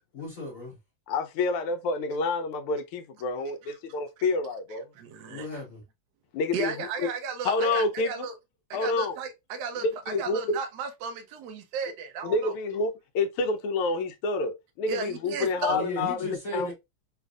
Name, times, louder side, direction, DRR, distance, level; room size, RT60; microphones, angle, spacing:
voice 1, 0.1-0.8 5.3-5.8 15.7-16.7, left 1 dB, 50° left, 1.2 m, -36 dB
voice 2, 1.1-4.9 6.3-7.1 7.4-8.3 8.7-9.2 9.8-10.6 12.2-16.7, left 3 dB, 85° left, 1.5 m, -28 dB
voice 3, 4.9-5.5 6.5-8.3 8.7-12.5 14.9-15.9, right 5 dB, 70° right, 1.0 m, -34 dB
4.0 x 2.5 x 2.3 m
omnidirectional pair, 2.3 m